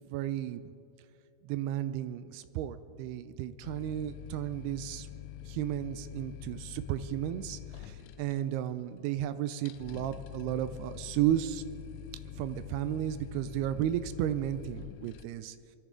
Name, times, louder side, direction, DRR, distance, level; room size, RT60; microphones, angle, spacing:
voice 1, 0.1-0.6 1.4-5.1 5.5-11.6 12.4-15.6, right 12 dB, 85° right, 12 dB, 2.4 m, -33 dB
sound 1, 3.6-15.2, left 11 dB, 85° left, 2.4 m, -45 dB
24.0 x 13.5 x 3.8 m, 2.4 s
omnidirectional pair, 4.9 m